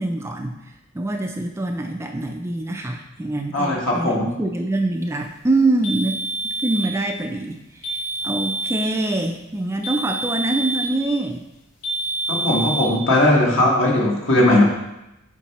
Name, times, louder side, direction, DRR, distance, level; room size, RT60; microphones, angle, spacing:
voice 1, 0.0-6.2 6.6-11.4, right 2 dB, 15° right, 3 dB, 0.3 m, -25 dB
voice 2, 3.5-4.3 12.3-14.6, left 1 dB, 65° left, -3 dB, 1.5 m, -18 dB
sound 1, 5.8-7.0 7.8-9.0 9.8-11.0 11.8-13.0, right 2 dB, 85° left, 1.6 m, -27 dB
7.0 x 4.5 x 3.0 m, 0.91 s
head